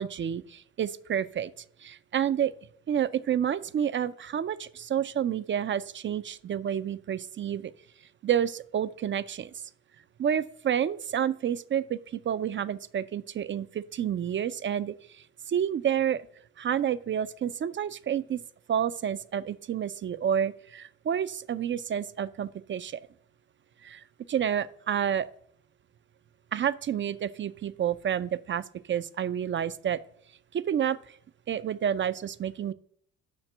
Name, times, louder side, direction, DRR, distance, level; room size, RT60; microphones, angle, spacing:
voice 1, 0.0-1.5 1.8-2.5 2.9-7.7 8.2-9.5 10.2-14.9 15.5-16.2 16.6-18.4 18.7-23.0 23.8-25.3 26.5-30.0 30.5-31.0 31.5-32.7, right 9 dB, 35° right, 15 dB, 0.4 m, -29 dB
5.7 x 4.5 x 6.4 m, 0.62 s
hypercardioid pair, 60°, 38 cm